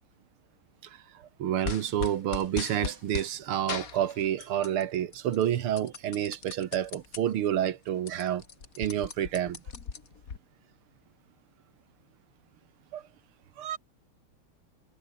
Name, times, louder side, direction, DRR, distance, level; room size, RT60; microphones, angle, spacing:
voice 1, 1.4-8.4 8.8-9.6 12.9-13.0 13.6-13.8, right 10 dB, 75° right, 2.1 m, -29 dB
sound 1, 1.6-3.3 3.7-4.8 5.1-7.2 7.6-7.7 7.9-10.4, left 6 dB, 40° left, 2.1 m, -38 dB
omnidirectional pair, 2.4 m